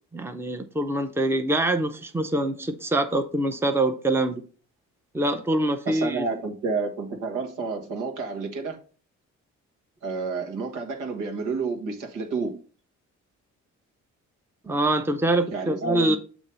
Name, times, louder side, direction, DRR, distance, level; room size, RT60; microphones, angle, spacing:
voice 1, 0.1-4.4 5.1-6.2 14.6-16.2, right 1 dB, 10° right, 0.7 m, -24 dB
voice 2, 5.8-8.8 10.0-12.6 15.5-16.2, right 4 dB, 90° right, 1.5 m, -30 dB
7.1 x 3.1 x 5.5 m
cardioid pair, 90°, 30 cm